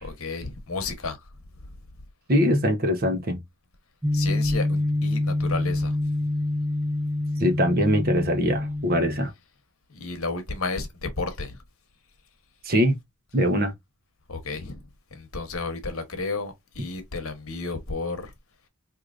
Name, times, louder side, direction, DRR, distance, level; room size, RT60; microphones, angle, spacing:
voice 1, 0.0-1.2 4.1-6.0 9.9-11.6 14.3-14.8 15.1-18.3, left 3 dB, 65° left, 1.1 m, -32 dB
voice 2, 2.3-3.4 7.4-9.3 12.6-13.0 13.3-13.7, equal, 40° right, 0.9 m, -22 dB
sound 1, 4.0-9.2, left 1 dB, 10° right, 0.4 m, -26 dB
4.6 x 2.8 x 2.5 m
head